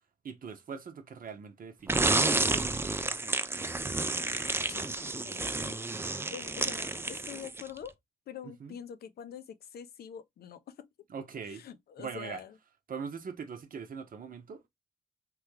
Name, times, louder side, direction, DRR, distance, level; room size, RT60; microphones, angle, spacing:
voice 1, 0.2-2.2 8.4-8.8 11.1-11.6 12.0-12.4 12.9-14.7, right 6 dB, 55° right, 0.8 m, -41 dB
sound 1, 1.9-7.8, right 2 dB, 15° right, 0.4 m, -30 dB
voice 2, 4.7-5.8 6.3-7.9 8.3-10.9 11.5-12.5, left 8 dB, 65° left, 0.5 m, -45 dB
3.3 x 2.2 x 3.2 m
supercardioid pair, 50°, 17 cm